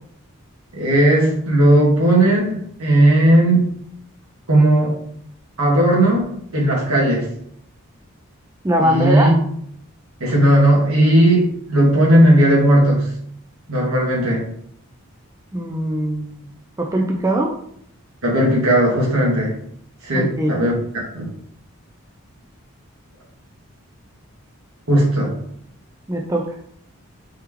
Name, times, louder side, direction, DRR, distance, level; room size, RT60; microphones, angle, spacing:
voice 1, 0.7-3.7 4.5-4.9 5.6-6.2 6.5-7.3 8.8-9.3 10.2-13.0 13.7-14.5 18.2-19.5 20.0-20.7 21.1-21.3 24.9-25.3, right 1 dB, 75° right, -3 dB, 1.7 m, -16 dB
voice 2, 8.6-9.3 15.5-16.3 16.8-17.5 20.1-20.5 26.1-26.5, right 1 dB, 15° right, 1 dB, 0.3 m, -21 dB
4.6 x 3.1 x 3.6 m, 0.68 s
head